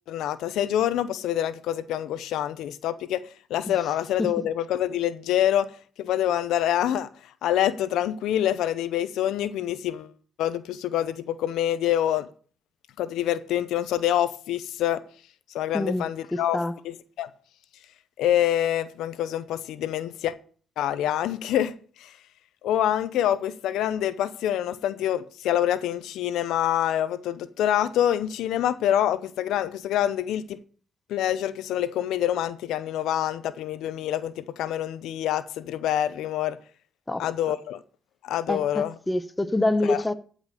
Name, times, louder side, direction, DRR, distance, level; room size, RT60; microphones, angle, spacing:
voice 1, 0.1-3.2 3.5-5.7 6.0-7.1 7.4-10.1 10.4-12.3 13.0-15.0 15.5-16.6 16.8-17.3 18.2-20.4 20.8-21.7 22.0-22.1 22.6-30.6 31.1-36.6 37.2-37.8 38.2-38.9 39.8-40.0, left 11 dB, 85° left, 0.7 m, -26 dB
voice 2, 15.7-16.7 37.1-37.2 38.5-40.1, left 2 dB, 15° left, 0.9 m, -26 dB
14.5 x 5.3 x 6.7 m
cardioid pair, 90°, 0 cm